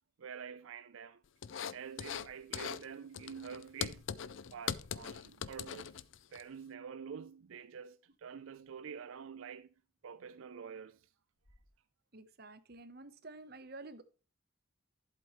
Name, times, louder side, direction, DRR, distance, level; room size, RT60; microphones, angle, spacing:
voice 1, 0.2-1.2 1.7-4.1 4.5-6.0 6.3-9.7 10.0-11.1, right 7 dB, 80° right, 0.5 m, -47 dB
sound 1, 1.2-1.3 1.8-3.5 4.2-4.9 9.4-9.6 10.0-10.1 10.5-10.6 11.0-11.1 11.4-11.7, left 1 dB, 45° left, 3.4 m, -71 dB
sound 2, 1.4-2.3 2.5-2.8 3.1-6.4, left 8 dB, 65° left, 0.5 m, -41 dB
voice 2, 12.1-14.0, right 2 dB, 50° right, 1.0 m, -50 dB
11.0 x 8.0 x 3.1 m
head